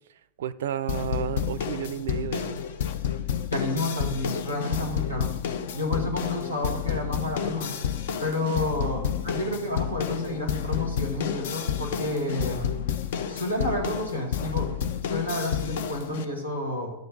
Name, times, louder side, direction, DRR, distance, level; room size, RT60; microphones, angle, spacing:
voice 1, 0.4-2.6 5.2-5.3 8.8-9.1, right 9 dB, 60° right, 0.3 m, -32 dB
sound 1, 0.9-16.2, left 8 dB, 55° left, 0.6 m, -30 dB
voice 2, 3.5-5.3 5.7-7.8 8.2-12.7 13.3-14.7 15.0-16.9, left 1 dB, 80° left, 2.1 m, -30 dB
12.0 x 6.7 x 3.9 m
figure-of-eight pair, 90°, 0 cm